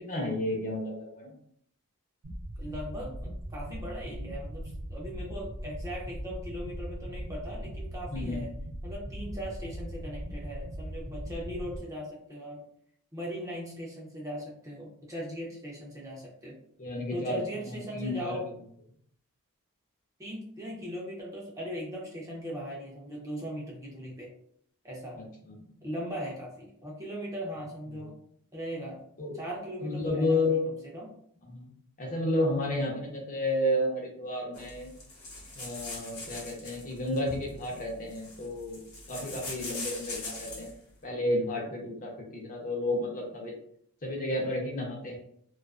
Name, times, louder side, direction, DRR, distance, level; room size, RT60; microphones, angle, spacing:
voice 1, 0.0-1.3 8.1-8.4 16.8-17.4 17.7-18.3 25.2-25.6 28.0-28.1 29.2-29.4 29.8-30.7 31.5-31.7 32.0-34.9 35.6-38.8 39.1-40.7 41.0-43.6 44.0-45.2, left 1 dB, 35° left, -1 dB, 0.6 m, -31 dB
sound 1, 2.2-11.8, equal, 80° right, 0.7 m, -39 dB
voice 2, 2.6-8.5 8.8-12.6 13.1-16.6 17.1-18.4 20.2-24.3 24.8-25.2 25.8-28.2 28.5-29.0 29.3-30.6 30.9-31.1, equal, 15° right, -4 dB, 0.5 m, -39 dB
sound 2, 34.5-40.8, left 2 dB, 70° left, 0.9 m, -42 dB
2.4 x 2.3 x 2.3 m, 0.67 s
head